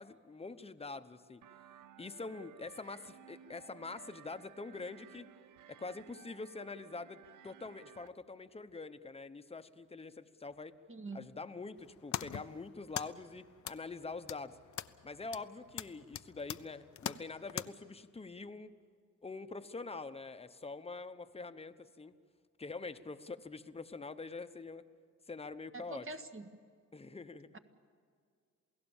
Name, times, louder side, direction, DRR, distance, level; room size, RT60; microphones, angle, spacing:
voice 1, 0.0-1.4 2.0-5.3 5.7-10.7 11.1-14.6 15.0-18.7 19.2-22.1 22.6-24.8 25.3-26.1 26.9-27.5, left 3 dB, 20° left, 10 dB, 0.9 m, -45 dB
sound 1, 1.4-8.1, right 10 dB, 85° right, 0.7 m, -57 dB
voice 2, 10.9-11.2 25.7-26.5 27.5-27.6, right 3 dB, 45° right, 7 dB, 1.5 m, -44 dB
sound 2, 11.8-17.7, left 10 dB, 70° left, 0.7 m, -44 dB
28.0 x 17.5 x 7.2 m, 2.1 s
cardioid pair, 95°, 30 cm